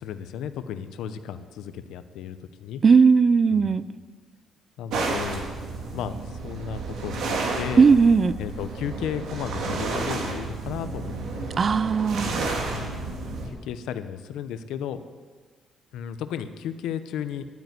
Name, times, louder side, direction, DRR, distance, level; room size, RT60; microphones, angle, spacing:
voice 1, 0.0-2.8 3.5-3.8 4.8-5.5 5.9-7.9 8.4-11.5 12.2-13.0 13.5-15.0 15.9-17.5, left 9 dB, 85° left, 11 dB, 0.9 m, -34 dB
voice 2, 2.8-3.9 7.8-8.4 11.6-12.3, right 5 dB, 40° right, 16 dB, 0.5 m, -17 dB
sound 1, 4.9-13.5, right 3 dB, 80° right, 2.6 m, -31 dB
12.0 x 9.3 x 9.6 m, 1.5 s
cardioid pair, 90°, 0 cm